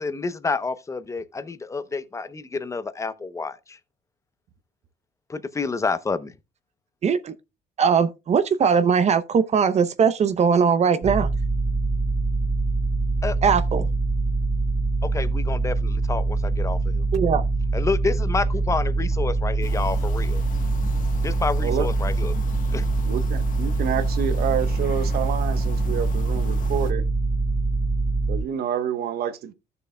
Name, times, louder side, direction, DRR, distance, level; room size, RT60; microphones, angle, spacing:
voice 1, 0.0-3.8 5.3-6.3 13.2-13.4 15.0-17.1 17.7-20.4 21.2-22.4 22.7-22.9, left 4 dB, 20° left, 0.7 m, -29 dB
voice 2, 7.0-7.3 7.8-11.3 13.4-13.9 17.1-17.4, right 6 dB, 40° right, 0.7 m, -20 dB
sound 1, 11.0-28.4, right 3 dB, 20° right, 1.4 m, -24 dB
sound 2, 19.6-26.9, left 5 dB, 50° left, 1.2 m, -39 dB
voice 3, 23.0-27.0 28.3-29.5, right 9 dB, 70° right, 1.0 m, -28 dB
15.0 x 6.8 x 2.2 m
cardioid pair, 110°, 17 cm